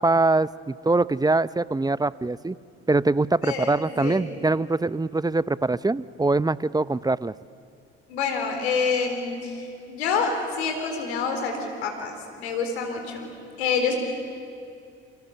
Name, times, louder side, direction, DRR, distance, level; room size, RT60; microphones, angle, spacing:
voice 1, 0.0-2.6 2.9-7.3, right 2 dB, 10° right, 17 dB, 0.7 m, -23 dB
voice 2, 3.4-4.3 8.1-13.3 13.6-14.0, left 5 dB, 85° left, 4 dB, 4.0 m, -27 dB
29.0 x 28.0 x 6.9 m, 2.4 s
hypercardioid pair, 50°, 31 cm